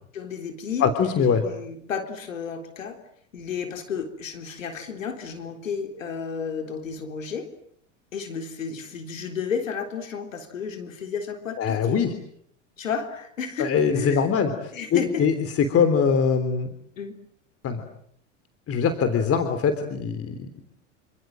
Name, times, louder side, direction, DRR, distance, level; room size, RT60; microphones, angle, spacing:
voice 1, 0.1-0.9 1.4-3.0 3.3-7.5 8.1-12.0 12.8-14.3 14.7-15.2 17.0-17.1, left 6 dB, 90° left, 6 dB, 3.8 m, -32 dB
voice 2, 0.8-1.4 11.6-12.1 13.6-14.5 14.9-16.7 17.6-17.8 18.7-20.5, left 6 dB, 35° left, 9 dB, 3.4 m, -22 dB
28.5 x 26.5 x 7.8 m, 0.67 s
hypercardioid pair, 90°, 38 cm